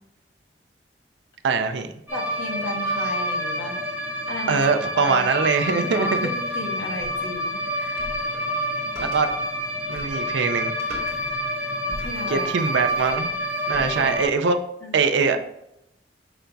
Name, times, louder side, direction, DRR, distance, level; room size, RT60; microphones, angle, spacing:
voice 1, 1.4-1.9 4.5-6.3 9.0-9.3 9.9-10.7 12.3-13.3 13.7-14.6 14.9-15.4, right 5 dB, 80° right, 8 dB, 0.4 m, -22 dB
voice 2, 2.1-3.8 4.3-4.6 4.9-5.3 5.7-8.0 11.9-12.7 13.9-14.2 14.8-15.0 15.2-15.4, left 1 dB, 75° left, -2 dB, 1.4 m, -34 dB
sound 1, 2.1-14.2, equal, 10° right, 0.6 m, -28 dB
sound 2, 7.0-14.4, right 1 dB, 40° right, 0.9 m, -43 dB
5.8 x 2.2 x 3.9 m, 0.80 s
head